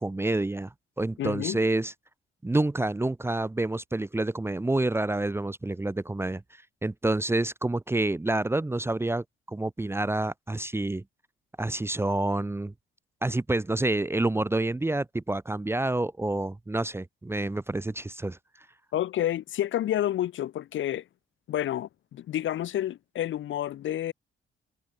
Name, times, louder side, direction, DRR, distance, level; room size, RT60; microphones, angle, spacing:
voice 1, 0.0-1.9 2.4-6.4 6.8-11.0 11.6-12.7 13.2-18.4, right 2 dB, 10° right, 0.9 m, -28 dB
voice 2, 1.2-1.6 18.9-21.0 21.5-24.1, left 12 dB, 75° left, 4.5 m, -29 dB
cardioid pair, 90°, 20 cm